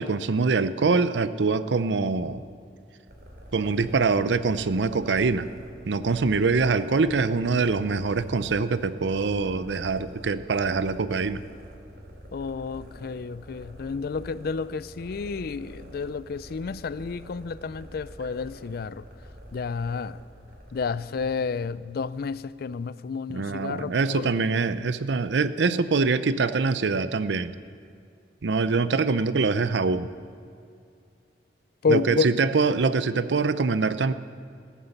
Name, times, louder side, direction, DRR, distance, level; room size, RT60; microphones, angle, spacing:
voice 1, 0.0-2.4 3.5-5.5 5.9-11.4 23.3-27.5 28.4-30.1 31.9-34.1, right 4 dB, 85° right, 13 dB, 0.6 m, -24 dB
sound 1, 3.1-22.3, equal, 60° right, 2.8 m, -46 dB
voice 2, 12.3-19.0 19.5-20.2 20.7-24.3 31.8-32.3, left 5 dB, 60° left, 17 dB, 0.4 m, -30 dB
15.5 x 11.5 x 6.7 m, 2.5 s
head